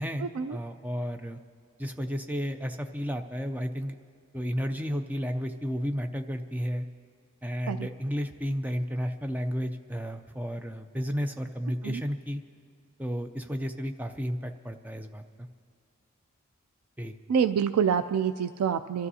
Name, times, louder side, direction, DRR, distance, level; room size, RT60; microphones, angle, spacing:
voice 1, 0.0-1.4 1.8-4.0 4.3-6.8 7.4-12.4 13.0-15.2 17.0-17.2, equal, 5° right, 6 dB, 0.4 m, -32 dB
voice 2, 17.3-19.1, right 7 dB, 85° right, 9 dB, 0.3 m, -26 dB
30.0 x 12.5 x 2.8 m, 2.2 s
head